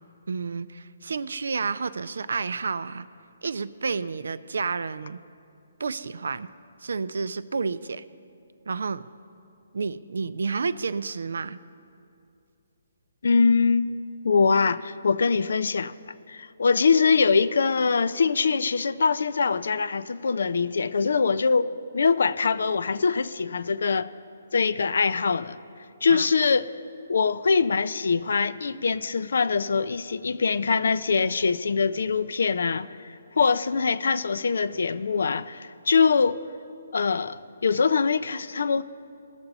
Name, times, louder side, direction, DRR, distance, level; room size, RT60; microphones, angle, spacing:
voice 1, 0.3-3.1 3.4-5.2 5.8-6.5 6.8-8.0 8.7-9.1 9.7-11.6 26.1-26.3, right 4 dB, 75° right, 0.4 m, -30 dB
voice 2, 13.2-14.0 14.2-15.9 16.3-21.7 21.9-24.1 24.5-25.6 26.0-26.7 27.1-36.4 36.9-38.8, left 5 dB, 70° left, 0.4 m, -23 dB
19.0 x 6.9 x 4.0 m
hypercardioid pair, 170°, 0 cm